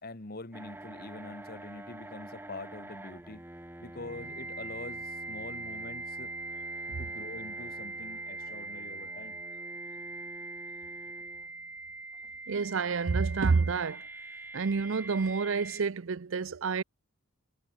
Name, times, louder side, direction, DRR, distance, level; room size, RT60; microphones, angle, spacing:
voice 1, 0.0-3.5 3.8-6.3 7.0-9.4, left 2 dB, 45° left, 1.5 m, -44 dB
sound 1, 0.5-15.8, right 2 dB, 10° right, 1.1 m, -42 dB
voice 2, 12.5-14.1 14.5-16.8, right 4 dB, 60° right, 0.6 m, -29 dB
head